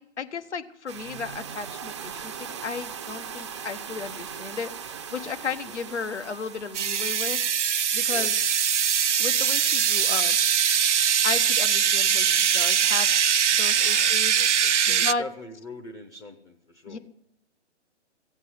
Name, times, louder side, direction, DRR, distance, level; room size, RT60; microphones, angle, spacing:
voice 1, 0.0-7.4 7.9-8.3 9.2-10.4 11.2-13.1 13.6-15.2 16.9-17.0, left 5 dB, 75° left, 11 dB, 1.4 m, -34 dB
sound 1, 0.9-7.5, right 7 dB, 25° right, 0.5 m, -39 dB
sound 2, 6.7-15.1, right 8 dB, 85° right, 0.5 m, -22 dB
voice 2, 13.7-17.0, left 3 dB, 15° left, 3 dB, 0.7 m, -43 dB
16.0 x 8.1 x 9.7 m, 0.76 s
figure-of-eight pair, 140°, 35 cm